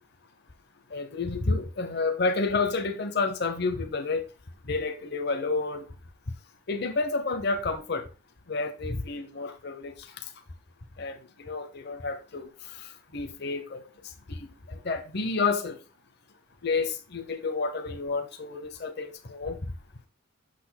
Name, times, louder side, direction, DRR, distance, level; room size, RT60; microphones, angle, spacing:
voice 1, 0.9-4.2 4.7-5.8 6.7-8.0 8.5-9.9 11.0-11.2 11.5-12.5 13.1-13.8 14.3-14.4 14.7-15.8 16.6-19.6, left 3 dB, 50° left, 0.9 m, -29 dB
8.3 x 6.1 x 2.3 m
head